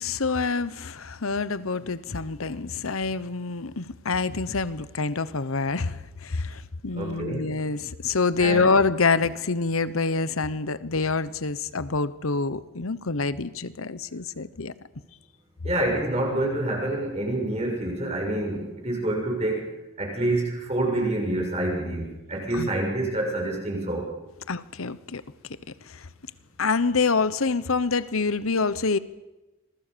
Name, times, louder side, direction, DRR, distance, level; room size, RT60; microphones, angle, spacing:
voice 1, 0.0-14.7 22.5-22.7 24.5-25.2 25.8-26.1 26.6-29.0, left 4 dB, 85° left, 1.1 m, -26 dB
voice 2, 6.9-7.5 8.4-8.7 15.6-19.6 20.0-24.1, right 1 dB, 30° right, 7.2 m, -27 dB
26.5 x 23.0 x 6.9 m
head